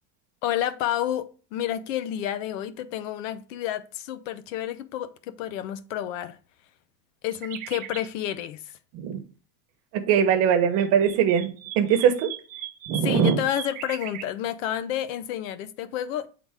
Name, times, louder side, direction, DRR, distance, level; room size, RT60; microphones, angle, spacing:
voice 1, 0.4-6.4 7.2-8.8 13.0-16.3, left 11 dB, 80° left, 0.8 m, -30 dB
sound 1, 7.3-8.1 10.5-14.3, right 12 dB, 25° right, 0.4 m, -39 dB
voice 2, 9.9-12.3 12.9-13.4, right 8 dB, 40° right, 1.0 m, -21 dB
8.6 x 3.9 x 3.6 m
cardioid pair, 180°, 38 cm